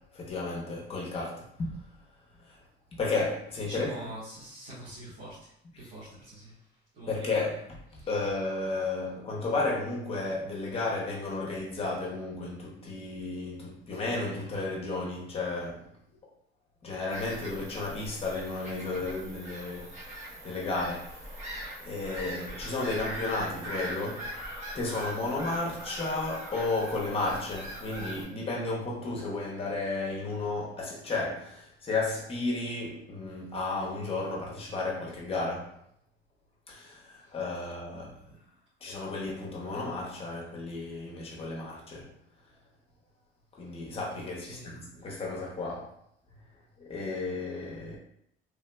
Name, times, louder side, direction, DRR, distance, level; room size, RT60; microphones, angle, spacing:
voice 1, 0.1-1.7 3.0-4.1 5.7-5.9 7.1-7.6 7.9-15.9 16.8-21.1 21.8-24.5 24.7-35.7 36.7-38.1 38.8-42.1 43.6-45.9 46.8-48.0, left 3 dB, 30° left, 0.8 m, -33 dB
voice 2, 3.6-5.5 5.8-6.6 6.9-7.4 8.0-8.1 37.9-38.4 44.5-44.7, right 1 dB, 70° right, 1.1 m, -44 dB
Bird vocalization bird call bird song / Gull seagull, 17.1-28.2, right 1 dB, 35° right, 1.0 m, -41 dB
3.2 x 2.6 x 2.2 m
cardioid pair, 145°, 20 cm